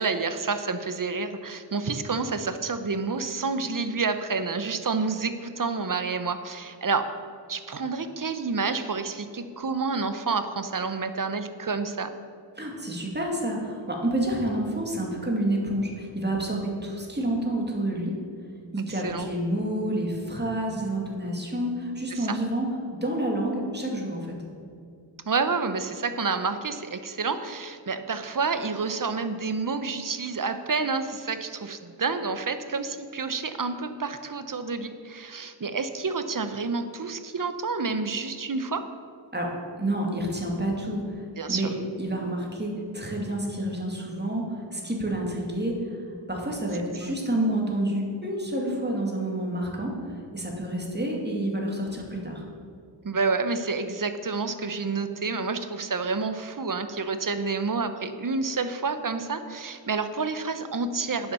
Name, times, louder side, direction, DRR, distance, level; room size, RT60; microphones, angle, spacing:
voice 1, 0.0-7.1 7.5-12.1 18.9-19.3 22.1-22.4 25.3-38.9 41.4-41.7 47.0-47.1 53.0-61.3, right 4 dB, 45° right, 10 dB, 0.8 m, -29 dB
voice 2, 12.6-18.1 18.7-22.7 23.0-24.4 39.3-41.2 41.5-41.7 42.0-45.7 46.3-50.0 50.3-52.4, right 1 dB, 20° right, -1 dB, 2.3 m, -29 dB
10.0 x 7.2 x 6.9 m, 2.4 s
wide cardioid pair, 70°, 46 cm